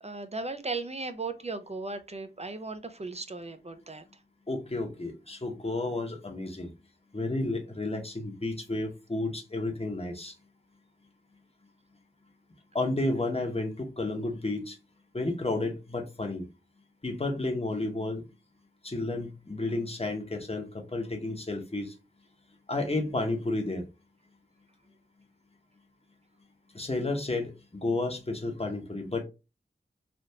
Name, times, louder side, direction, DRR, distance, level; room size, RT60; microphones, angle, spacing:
voice 1, 0.0-4.0, right 3 dB, 35° right, 0.5 m, -36 dB
voice 2, 4.5-6.7 7.1-10.3 12.7-14.8 15.1-16.4 17.0-18.2 18.8-21.9 22.7-23.8 26.7-27.5 27.8-29.2, left 2 dB, 30° left, 1.0 m, -31 dB
3.4 x 2.5 x 2.7 m
wide cardioid pair, 45°, 19 cm